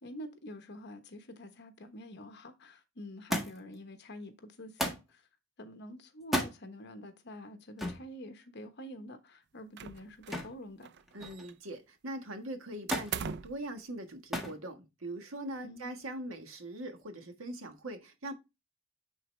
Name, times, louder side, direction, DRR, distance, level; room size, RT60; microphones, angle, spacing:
voice 1, 0.0-5.3 5.6-10.9 15.6-16.1, left 1 dB, 55° left, 1.1 m, -47 dB
Thump thud, 3.3-3.8 4.8-5.1 6.2-6.6 7.8-8.1 10.3-10.6 11.0-11.5 12.9-13.2 14.3-14.6 15.5-16.0 17.0-17.1, left 1 dB, ahead, 1.5 m, -34 dB
sound 1, 9.8-10.5 10.8-11.7 12.9-13.6, right 7 dB, 55° right, 0.4 m, -40 dB
voice 2, 11.1-18.3, right 1 dB, 90° right, 1.5 m, -42 dB
9.3 x 4.0 x 3.3 m
head